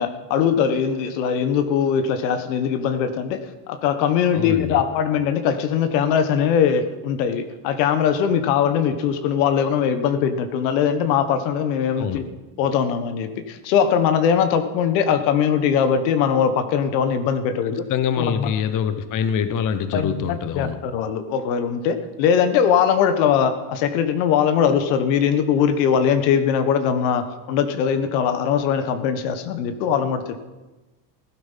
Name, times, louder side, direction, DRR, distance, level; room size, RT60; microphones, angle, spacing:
voice 1, 0.0-3.4 3.7-12.2 12.6-17.8 18.2-18.5 19.9-30.4, left 7 dB, 80° left, 1.6 m, -21 dB
voice 2, 4.3-4.8 12.0-12.3 17.9-20.8, left 7 dB, 40° left, 1.0 m, -24 dB
15.5 x 12.0 x 5.8 m
supercardioid pair, 125°, 50 cm